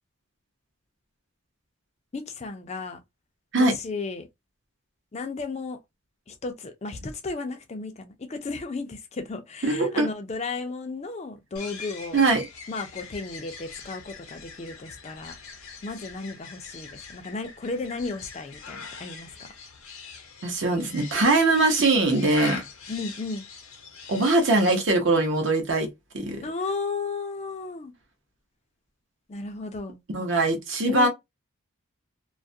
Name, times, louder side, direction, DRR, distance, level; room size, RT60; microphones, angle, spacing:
voice 1, 2.1-3.0 3.6-4.3 5.1-5.8 6.3-12.2 12.7-15.3 15.8-19.3 22.9-23.4 26.4-27.9 29.3-30.0 30.9-31.1, left 3 dB, 30° left, 0.4 m, -34 dB
voice 2, 9.6-10.1 12.1-12.4 20.4-22.6 24.1-25.9 26.1-26.4 30.1-31.1, right 2 dB, 55° right, 0.7 m, -22 dB
sound 1, 11.6-24.8, left 5 dB, 80° left, 0.7 m, -42 dB
2.3 x 2.1 x 2.6 m
head